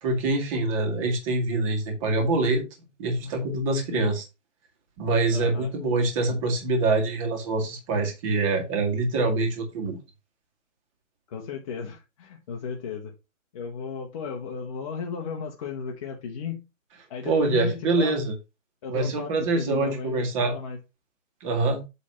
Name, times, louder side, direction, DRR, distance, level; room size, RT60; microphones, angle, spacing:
voice 1, 0.0-2.6 3.0-4.2 5.0-10.0 17.3-18.3 18.9-20.5 21.4-21.8, right 3 dB, 25° right, 3 dB, 2.0 m, -25 dB
voice 2, 5.3-5.7 11.3-13.1 13.5-16.6 17.1-18.2 18.8-20.8, left 6 dB, 25° left, 0 dB, 1.0 m, -35 dB
8.3 x 3.5 x 5.5 m, 0.25 s
hypercardioid pair, 165°, 39 cm